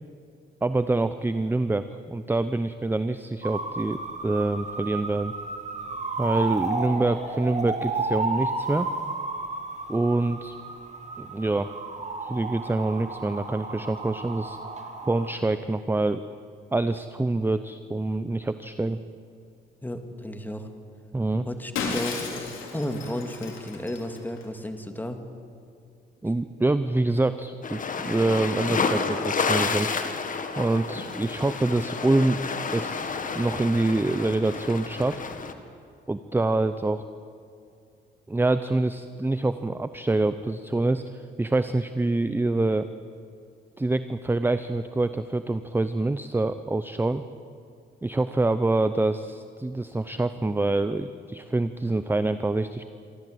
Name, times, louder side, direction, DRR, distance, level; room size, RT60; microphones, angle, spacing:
voice 1, 0.6-5.3 6.2-8.9 9.9-10.6 11.2-11.7 12.2-14.6 15.1-16.2 16.7-19.0 21.1-21.4 26.2-29.9 30.6-32.4 32.7-33.1 33.3-35.2 36.1-37.0 38.3-42.9 43.8-47.2 48.0-52.8, right 2 dB, 10° right, 12 dB, 0.7 m, -26 dB
sound 1, 3.4-15.3, right 3 dB, 35° right, 2.3 m, -33 dB
voice 2, 19.8-20.7 21.4-22.4 22.7-25.2, left 1 dB, 10° left, 6 dB, 2.1 m, -33 dB
Shatter, 21.8-24.4, left 4 dB, 80° left, 3.7 m, -34 dB
sound 2, 27.6-35.5, left 5 dB, 40° left, 1.7 m, -30 dB
25.5 x 13.5 x 7.9 m, 2.4 s
cardioid pair, 90°, 20 cm